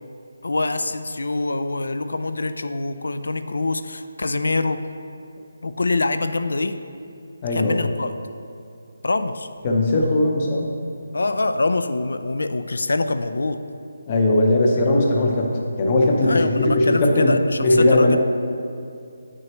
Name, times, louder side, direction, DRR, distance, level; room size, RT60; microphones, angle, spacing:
voice 1, 0.4-4.8 5.6-6.8 7.5-8.1 9.0-9.5 11.1-13.6 16.2-18.2, left 2 dB, 85° left, 10 dB, 0.4 m, -24 dB
voice 2, 7.4-7.9 9.6-10.7 14.1-17.3 17.6-18.2, left 2 dB, 20° left, 0 dB, 0.6 m, -19 dB
8.7 x 6.2 x 3.0 m, 2.4 s
hypercardioid pair, 175°, 0 cm